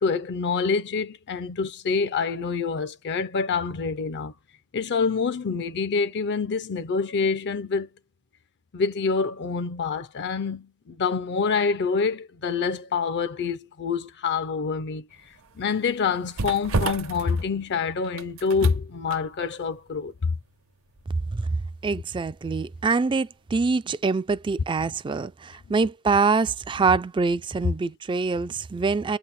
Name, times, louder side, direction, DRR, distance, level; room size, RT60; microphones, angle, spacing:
voice 1, 0.0-4.3 4.7-7.9 8.7-20.4, left 5 dB, 55° left, 0.5 m, -26 dB
sound 1, 15.1-23.1 23.4-23.6, right 3 dB, 70° right, 0.9 m, -34 dB
voice 2, 21.3-29.2, right 4 dB, 20° right, 0.3 m, -25 dB
8.4 x 3.1 x 4.2 m
head